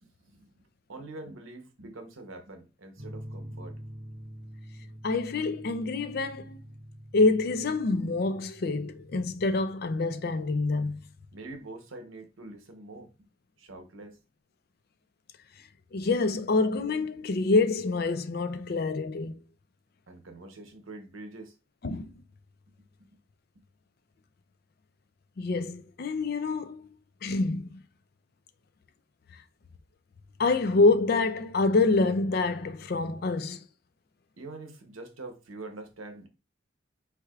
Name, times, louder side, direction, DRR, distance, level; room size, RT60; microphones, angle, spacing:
voice 1, 0.0-0.5 0.9-3.8 11.3-13.3 13.6-14.2 20.1-21.5 22.8-23.1 23.5-23.6 34.4-36.3, right 2 dB, 90° right, 0.9 m, -45 dB
sound 1, 3.0-10.6, equal, 65° right, 2.7 m, -46 dB
voice 2, 5.0-6.6 7.1-11.0 15.9-19.4 21.8-22.1 25.4-26.9 27.2-27.8 30.4-33.6, left 3 dB, 50° left, 0.4 m, -26 dB
4.7 x 4.3 x 2.4 m
head